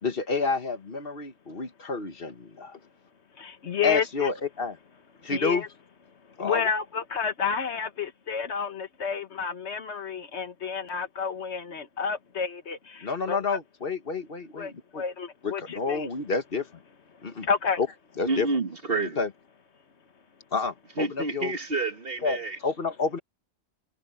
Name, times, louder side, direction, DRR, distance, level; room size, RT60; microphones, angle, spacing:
voice 1, 0.0-2.8 3.8-4.8 5.2-5.6 6.4-6.6 13.0-15.0 15.4-16.7 17.2-17.5 17.8-17.9 18.2-18.5 19.2-19.3 20.5-21.5 22.2-22.4 22.6-23.2, left 4 dB, 55° left, 1.6 m, -29 dB
voice 2, 3.4-4.3 5.3-5.7 6.4-13.6 14.6-16.1 17.5-17.8, left 6 dB, 80° left, 1.6 m, -30 dB
voice 3, 18.3-19.2 21.0-22.6, right 3 dB, 55° right, 1.9 m, -29 dB
omnidirectional pair, 1.1 m